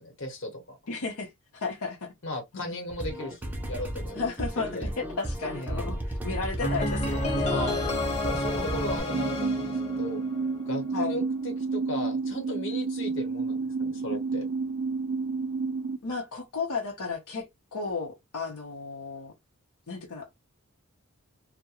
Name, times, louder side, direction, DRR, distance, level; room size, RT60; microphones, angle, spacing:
voice 1, 0.0-0.8 2.2-4.2 4.6-4.9 5.5-5.9 7.5-7.9 8.2-10.2 10.7-14.5, left 1 dB, 55° left, 0.9 m, -36 dB
voice 2, 0.9-2.1 2.5-2.8 4.1-4.9 5.2-7.8 8.6-9.2 10.9-11.2 16.0-17.4 17.7-19.3 19.9-20.3, left 4 dB, 85° left, 0.7 m, -34 dB
sound 1, 2.9-9.0, right 1 dB, 10° right, 0.4 m, -34 dB
sound 2, 6.6-10.7, left 1 dB, 30° left, 0.7 m, -30 dB
sound 3, 9.1-16.0, right 4 dB, 80° right, 0.4 m, -30 dB
2.3 x 2.1 x 2.8 m
head